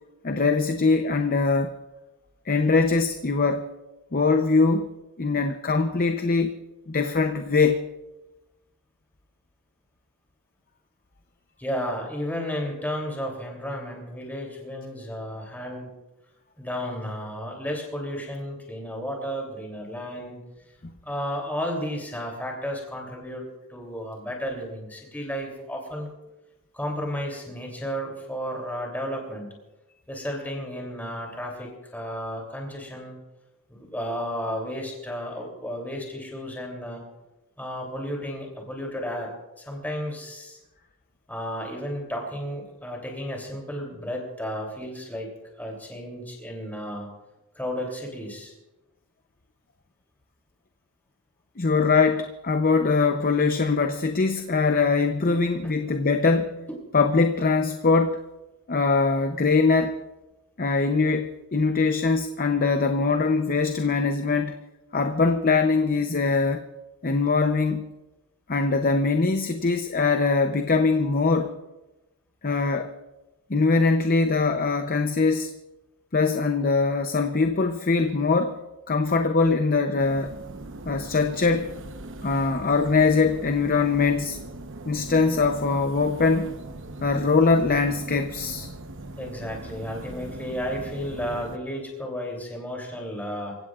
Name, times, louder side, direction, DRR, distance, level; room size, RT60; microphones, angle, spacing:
voice 1, 0.2-1.7 2.5-3.7 4.1-4.9 5.2-6.6 6.9-7.8 51.6-56.6 56.9-58.2 58.7-60.0 60.6-64.6 64.9-66.7 67.0-67.9 68.5-71.6 72.4-72.9 73.5-75.5 76.1-78.6 78.9-80.4 80.9-81.7 82.2-84.4 84.9-86.5 87.0-88.7, left 4 dB, 40° left, 7 dB, 0.7 m, -22 dB
voice 2, 11.6-15.9 16.6-20.4 21.0-26.1 26.7-29.6 30.1-33.2 33.7-37.0 37.6-39.3 39.6-40.6 41.3-45.3 45.6-47.1 47.5-48.5 55.3-55.7 89.2-93.6, equal, 10° left, 0 dB, 3.0 m, -33 dB
sound 1, 80.0-91.6, right 2 dB, 60° right, 1.0 m, -40 dB
26.0 x 16.0 x 2.5 m, 1.0 s
head